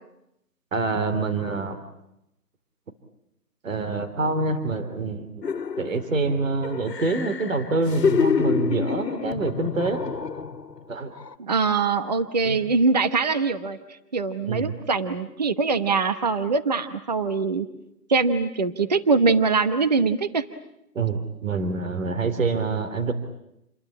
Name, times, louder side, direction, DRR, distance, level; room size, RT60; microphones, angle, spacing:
voice 1, 0.7-1.8 3.6-5.4 5.8-10.1 10.9-11.1 12.4-12.6 14.5-14.7 20.9-23.1, right 3 dB, 50° right, 10 dB, 3.4 m, -26 dB
sound 1, 5.4-6.2 6.6-10.8 11.2-11.3, left 6 dB, 80° left, 1.8 m, -27 dB
voice 2, 11.4-13.8 14.1-17.7 18.1-20.4, right 4 dB, 25° right, 10 dB, 1.0 m, -23 dB
29.0 x 21.5 x 8.7 m, 0.82 s
hypercardioid pair, 170°, 48 cm